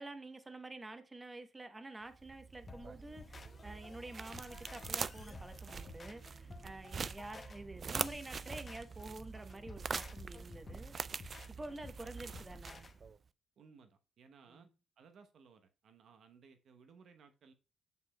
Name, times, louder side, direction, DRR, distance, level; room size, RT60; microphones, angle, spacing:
voice 1, 0.0-10.9 11.6-12.9 14.5-14.7, right 2 dB, 20° right, 0.9 m, -49 dB
sound 1, 2.1-13.2, right 5 dB, 40° right, 0.3 m, -44 dB
sound 2, 2.7-12.9, left 4 dB, 35° left, 0.8 m, -54 dB
voice 2, 13.6-14.7 15.0-17.5, right 5 dB, 65° right, 0.9 m, -61 dB
7.0 x 6.1 x 2.2 m
cardioid pair, 90°, 0 cm